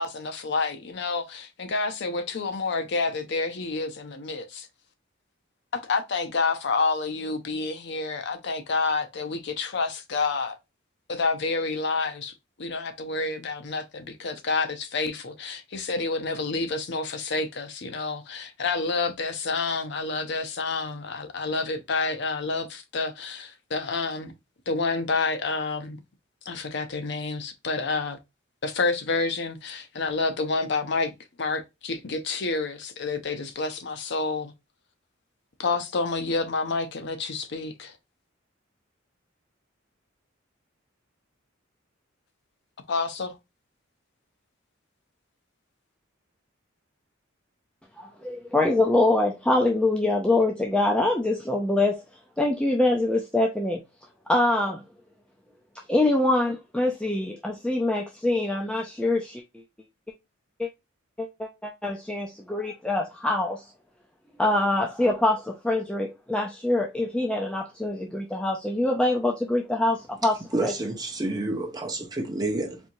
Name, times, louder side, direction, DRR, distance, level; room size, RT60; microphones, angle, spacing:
voice 1, 0.0-4.7 5.7-10.6 11.1-12.3 12.6-24.3 24.7-26.0 26.5-28.2 28.6-31.1 31.4-34.5 35.6-38.0 42.9-43.4, left 3 dB, 55° left, 0.6 m, -29 dB
voice 2, 48.0-52.0 52.4-53.8 54.3-54.8 55.9-59.4 60.6-60.7 61.2-63.6 64.4-70.4 70.6-70.7, left 2 dB, 5° left, 0.5 m, -24 dB
voice 3, 70.5-72.8, right 2 dB, 20° right, 0.8 m, -29 dB
4.3 x 2.7 x 2.6 m
head